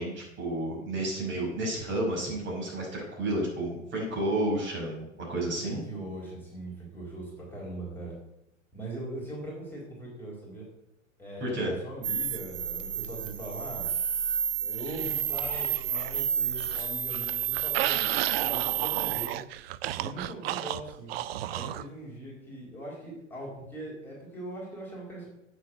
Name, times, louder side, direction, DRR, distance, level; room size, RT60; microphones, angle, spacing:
voice 1, 0.0-5.8 11.4-11.7, right 1 dB, 30° right, -2 dB, 5.6 m, -31 dB
voice 2, 5.6-8.1 8.7-10.7 11.2-13.9 14.6-19.4 20.0-21.1 21.5-25.3, right 1 dB, 5° left, -5 dB, 4.6 m, -41 dB
sound 1, 12.0-19.3, right 8 dB, 75° right, 1.3 m, -30 dB
sound 2, 14.9-16.2 16.5-21.9, right 13 dB, 50° right, 0.7 m, -34 dB
9.2 x 7.9 x 8.0 m, 0.82 s
hypercardioid pair, 110°, 39 cm